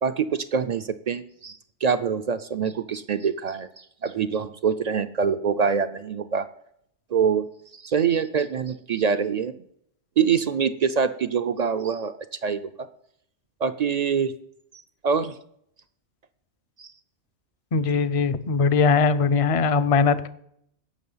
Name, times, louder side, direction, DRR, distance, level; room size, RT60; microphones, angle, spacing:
voice 1, 0.0-6.5 7.1-7.5 7.7-9.5 10.2-12.2 12.4-12.9 13.6-14.3 15.0-15.4 16.8-16.9, right 6 dB, 60° right, 11 dB, 0.4 m, -25 dB
voice 2, 17.7-20.3, left 5 dB, 45° left, 14 dB, 0.4 m, -20 dB
16.0 x 6.1 x 5.5 m, 0.72 s
omnidirectional pair, 1.2 m